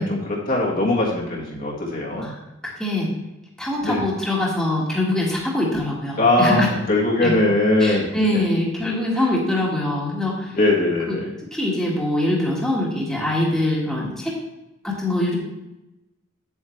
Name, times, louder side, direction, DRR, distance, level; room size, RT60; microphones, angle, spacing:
voice 1, 0.0-2.3 3.8-4.0 6.2-6.6 6.9-8.0 8.3-8.4 10.5-11.3, left 2 dB, 45° left, -3 dB, 1.7 m, -20 dB
voice 2, 2.6-3.1 3.6-6.7 7.2-7.3 7.8-10.6 11.1-11.2 11.5-14.4 14.8-15.4, left 1 dB, ahead, -5 dB, 1.8 m, -23 dB
8.6 x 8.1 x 3.3 m, 0.95 s
head